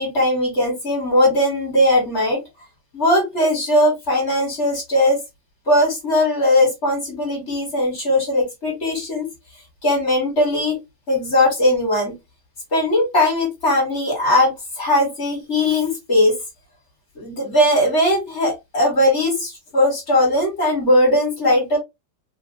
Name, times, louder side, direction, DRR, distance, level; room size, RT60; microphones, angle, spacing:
voice 1, 0.0-2.4 2.9-5.2 5.7-9.3 9.8-10.8 11.1-12.1 12.7-16.4 17.1-21.8, left 1 dB, 40° left, 1.6 m, -19 dB
3.5 x 2.4 x 2.6 m
omnidirectional pair, 2.1 m